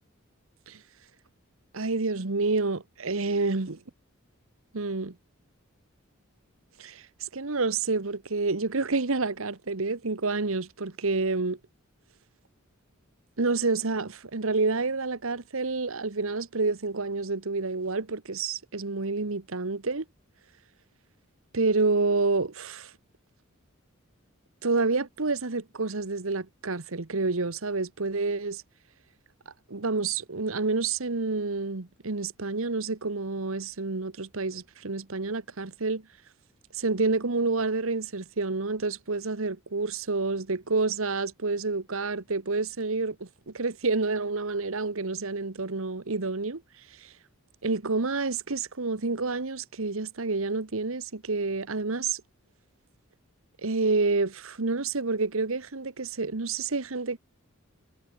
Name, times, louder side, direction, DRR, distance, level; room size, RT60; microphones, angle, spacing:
voice 1, 1.7-3.8 4.7-5.1 6.8-11.6 13.4-20.0 21.5-22.9 24.6-28.6 29.7-36.0 36.7-46.6 47.0-47.1 47.6-52.2 53.6-57.2, right 3 dB, 70° right, 1.3 m, -28 dB
head